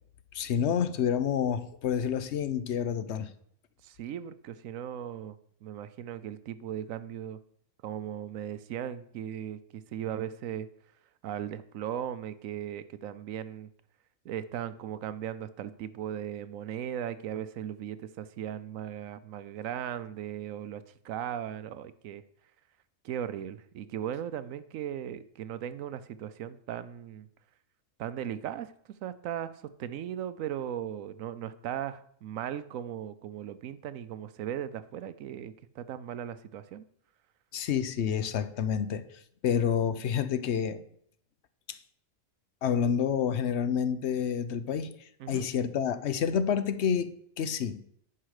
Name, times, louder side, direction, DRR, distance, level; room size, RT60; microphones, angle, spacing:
voice 1, 0.3-3.3 37.5-39.0 39.4-40.8 41.7-41.8 42.6-47.1 47.4-47.8, left 8 dB, 60° left, 0.9 m, -29 dB
voice 2, 3.8-5.4 5.6-7.4 7.8-10.7 11.2-13.7 14.2-22.2 23.0-27.3 28.0-28.7 29.0-36.9 45.2-45.5, right 10 dB, 75° right, 1.0 m, -37 dB
10.0 x 5.7 x 4.9 m
omnidirectional pair, 1.4 m